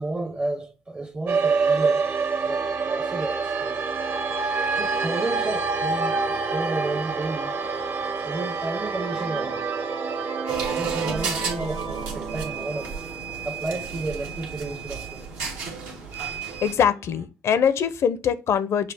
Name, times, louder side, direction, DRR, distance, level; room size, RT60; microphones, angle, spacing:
voice 1, 0.0-2.1 2.5-3.9 4.7-7.5 8.2-9.7 10.8-13.0 13.4-15.3, right 2 dB, 20° right, 0.6 m, -32 dB
sound 1, 1.3-15.8, right 4 dB, 50° right, 0.9 m, -28 dB
sound 2, 5.9-7.5 8.1-8.2 8.6-13.1, right 7 dB, 70° right, 0.5 m, -36 dB
sound 3, 10.5-16.7, right 6 dB, 90° right, 1.3 m, -32 dB
voice 2, 16.6-18.9, left 8 dB, 55° left, 0.5 m, -22 dB
6.4 x 2.4 x 3.4 m
supercardioid pair, 70°, 6 cm